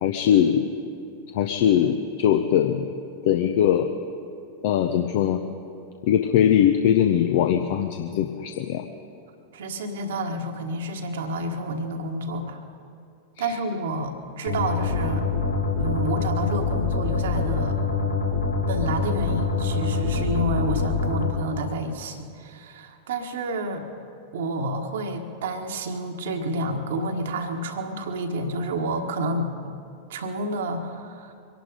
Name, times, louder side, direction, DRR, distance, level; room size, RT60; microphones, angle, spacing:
voice 1, 0.0-0.6 1.3-2.9 3.2-3.9 4.6-5.4 6.0-8.8 13.4-13.5, left 9 dB, 50° left, 7 dB, 0.7 m, -21 dB
voice 2, 9.5-12.6 13.4-15.3 15.8-17.8 18.7-23.9 24.3-29.7 30.1-31.3, right 1 dB, 60° right, 4 dB, 1.5 m, -29 dB
sound 1, 14.5-21.3, left 4 dB, 75° left, 2.6 m, -25 dB
24.0 x 11.5 x 5.2 m, 2.5 s
figure-of-eight pair, 90°, 0 cm